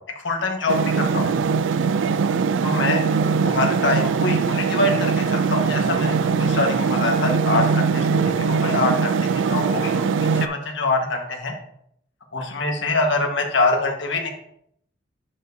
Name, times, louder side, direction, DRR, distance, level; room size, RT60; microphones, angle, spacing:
voice 1, 0.2-1.4 2.6-9.1 9.5-11.5 12.3-14.3, left 2 dB, 80° left, 1 dB, 1.5 m, -24 dB
sound 1, 0.7-10.5, right 5 dB, 85° right, 0.4 m, -21 dB
11.0 x 5.1 x 2.7 m, 0.70 s
head